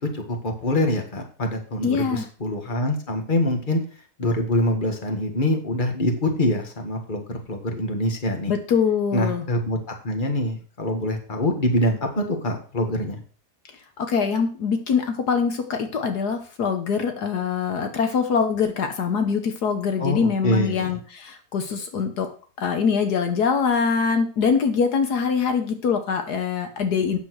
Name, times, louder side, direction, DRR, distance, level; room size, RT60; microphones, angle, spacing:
voice 1, 0.1-3.8 4.2-8.5 9.1-13.2 20.0-21.0, left 1 dB, 30° left, 4 dB, 1.9 m, -25 dB
voice 2, 1.8-2.3 8.5-9.4 14.0-22.3 22.6-27.2, left 6 dB, 75° left, 6 dB, 1.7 m, -23 dB
8.9 x 6.9 x 6.3 m, 0.39 s
omnidirectional pair, 1.7 m